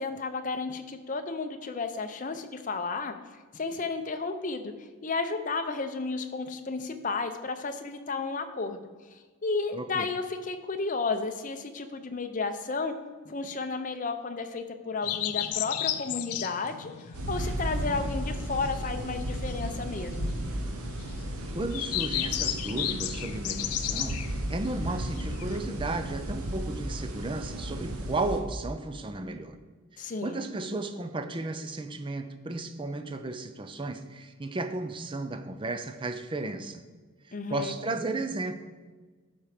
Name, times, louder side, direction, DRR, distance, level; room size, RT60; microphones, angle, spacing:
voice 1, 0.0-4.7 5.0-8.8 9.1-12.9 13.3-20.3 30.0-30.4 37.3-37.7, left 4 dB, 35° left, 8 dB, 0.6 m, -33 dB
voice 2, 9.7-10.1 21.5-29.6 29.9-36.8 37.3-38.6, right 2 dB, 25° right, 8 dB, 0.5 m, -34 dB
sound 1, 15.0-25.6, left 12 dB, 85° left, 0.4 m, -35 dB
sound 2, 17.1-28.4, right 1 dB, 90° right, 1.2 m, -34 dB
12.0 x 4.4 x 5.0 m, 1.4 s
head